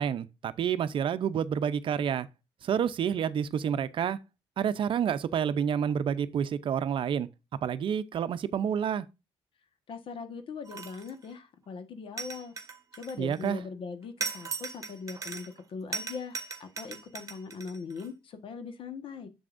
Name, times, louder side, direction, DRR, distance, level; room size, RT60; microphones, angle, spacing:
voice 1, 0.0-2.3 2.6-4.2 4.6-7.3 7.6-9.1 13.2-13.6, right 8 dB, 55° right, 0.6 m, -29 dB
voice 2, 9.9-12.5 12.9-19.3, left 5 dB, 55° left, 1.4 m, -40 dB
sound 1, 10.7-11.3 12.2-13.5 14.2-15.6 15.9-18.1, right 4 dB, 30° right, 1.2 m, -38 dB
7.4 x 7.0 x 2.6 m
cardioid pair, 115°, 11 cm